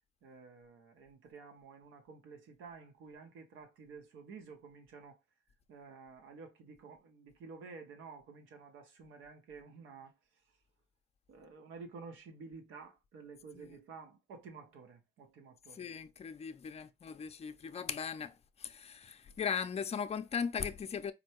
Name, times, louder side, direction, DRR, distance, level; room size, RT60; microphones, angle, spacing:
voice 1, 0.2-5.2 5.7-10.4 11.3-15.9, right 4 dB, 90° right, 1.1 m, -52 dB
voice 2, 15.7-21.1, left 7 dB, 30° left, 0.5 m, -38 dB
4.3 x 2.2 x 3.0 m
cardioid pair, 90°, 20 cm